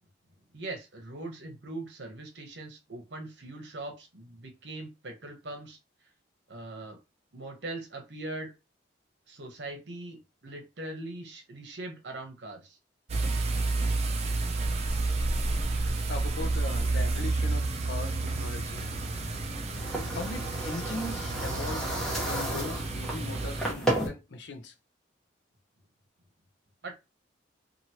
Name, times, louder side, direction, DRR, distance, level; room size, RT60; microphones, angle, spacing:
voice 1, 0.5-5.8 6.5-7.0 7.3-8.5 9.3-12.8 26.8-26.9, right 2 dB, 70° right, 0.9 m, -41 dB
sound 1, 13.1-23.7, right 2 dB, 35° right, 0.5 m, -30 dB
voice 2, 16.1-18.9 20.1-21.9 22.2-24.7, left 3 dB, 70° left, 0.6 m, -39 dB
sound 2, 18.8-24.1, right 1 dB, 5° left, 1.0 m, -34 dB
3.0 x 2.5 x 2.8 m
head